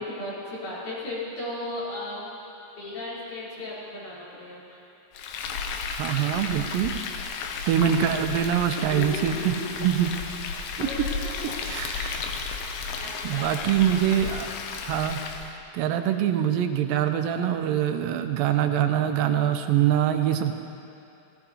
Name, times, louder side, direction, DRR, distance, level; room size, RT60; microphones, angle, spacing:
voice 1, 0.0-2.4 2.8-4.8 8.7-9.9 10.8-11.5 12.6-13.5 15.7-15.9, left 2 dB, 65° left, -9 dB, 5.1 m, -36 dB
Frying (food), 5.1-15.5, left 5 dB, 90° left, 2.5 m, -33 dB
voice 2, 5.9-6.9 7.7-9.5 9.8-10.1 10.8-10.9 11.6-12.3 12.8-14.5 14.8-20.5, right 10 dB, 90° right, 6 dB, 2.5 m, -24 dB
17.0 x 15.5 x 2.8 m, 2.7 s
omnidirectional pair, 4.0 m